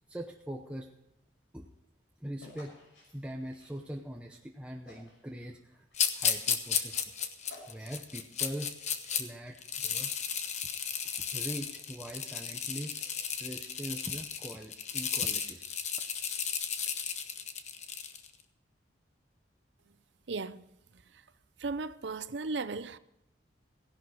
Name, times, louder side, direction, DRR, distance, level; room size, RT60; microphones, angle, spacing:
voice 1, 0.1-0.9 1.5-1.7 2.2-2.7 3.1-5.9 6.2-7.0 7.7-8.7 9.1-10.1 11.3-15.7, equal, 5° right, 0.7 m, -42 dB
sound 1, 2.4-4.4 4.8-5.3 5.6-8.2, left 1 dB, 90° left, 6.2 m, -55 dB
sound 2, 5.9-9.2 9.6-18.3, left 7 dB, 40° left, 1.1 m, -34 dB
voice 2, 20.3-20.7 21.1-21.2 21.6-23.0, right 3 dB, 65° right, 0.6 m, -36 dB
16.0 x 11.0 x 4.8 m
head